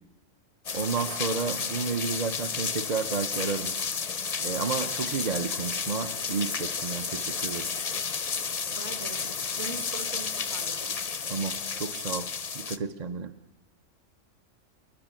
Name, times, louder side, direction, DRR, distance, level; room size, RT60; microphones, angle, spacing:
sound 1, 0.6-12.8, left 5 dB, 40° left, 0.7 m, -32 dB
voice 1, 0.7-3.7 4.4-7.7 11.3-12.3 12.5-13.3, right 5 dB, 40° right, 8 dB, 0.7 m, -31 dB
voice 2, 8.6-9.3 9.5-10.8, right 4 dB, 60° right, 5 dB, 2.1 m, -41 dB
29.5 x 11.5 x 9.0 m, 1.2 s
omnidirectional pair, 1.3 m